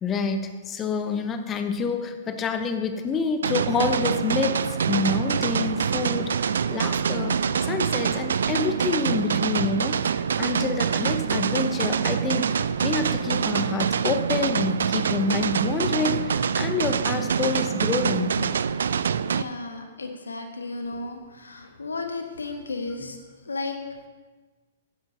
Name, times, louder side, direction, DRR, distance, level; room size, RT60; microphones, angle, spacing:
voice 1, 0.0-18.4, left 4 dB, 20° left, 8 dB, 0.8 m, -28 dB
sound 1, 3.4-19.4, right 7 dB, 65° right, 0.3 m, -25 dB
voice 2, 19.3-23.2 23.4-23.8, left 3 dB, 80° left, 5 dB, 1.3 m, -34 dB
13.0 x 10.5 x 2.8 m, 1.3 s
figure-of-eight pair, 110°, 0 cm